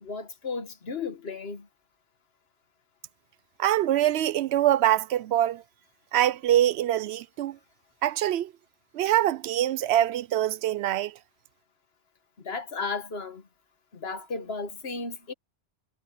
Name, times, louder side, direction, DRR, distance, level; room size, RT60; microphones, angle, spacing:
voice 1, 0.0-1.7 12.4-13.4 13.9-15.3, left 4 dB, 65° left, 1.6 m, -34 dB
voice 2, 3.6-5.6 6.1-7.6 8.0-8.5 8.9-11.1, right 12 dB, 75° right, 0.8 m, -24 dB
omnidirectional pair, 1.1 m